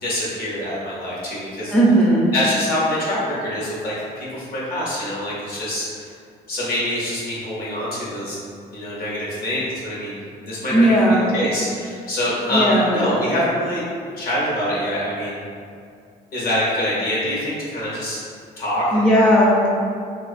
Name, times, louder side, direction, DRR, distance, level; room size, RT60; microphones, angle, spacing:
voice 1, 0.0-1.7 2.3-6.1 6.5-8.4 8.7-13.8 14.1-15.4 16.3-18.2 18.6-19.1, left 1 dB, 60° left, -7 dB, 0.9 m, -25 dB
voice 2, 1.7-2.3 10.7-11.3 12.5-12.9 18.9-19.7, equal, 5° left, -5 dB, 0.3 m, -16 dB
2.4 x 2.3 x 2.4 m, 2.3 s
cardioid pair, 110°, 17 cm